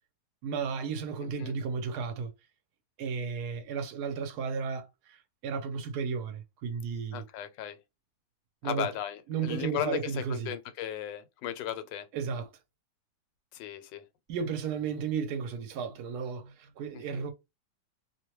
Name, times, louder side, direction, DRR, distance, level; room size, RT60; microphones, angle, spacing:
voice 1, 0.4-2.3 3.0-7.2 8.6-8.9 9.3-10.6 12.1-12.5 14.3-17.3, right 6 dB, 70° right, 1.1 m, -34 dB
voice 2, 7.1-7.8 8.6-12.1 13.5-14.0 16.9-17.2, left 10 dB, 90° left, 1.3 m, -36 dB
2.8 x 2.1 x 3.0 m
omnidirectional pair, 1.9 m